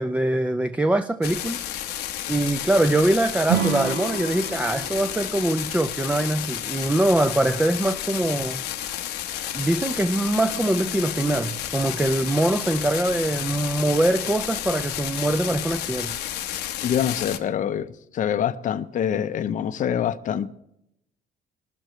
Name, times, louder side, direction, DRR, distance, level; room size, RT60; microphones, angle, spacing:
voice 1, 0.0-1.6 2.3-8.6 9.5-16.2, right 1 dB, 10° right, 0.5 m, -23 dB
sound 1, 1.2-17.4, left 11 dB, 80° left, 1.0 m, -31 dB
Acoustic guitar / Strum, 3.5-6.7, right 10 dB, 90° right, 0.9 m, -30 dB
voice 2, 16.8-17.9 18.1-20.5, left 9 dB, 50° left, 0.7 m, -25 dB
21.5 x 13.0 x 3.1 m
cardioid pair, 110°, 17 cm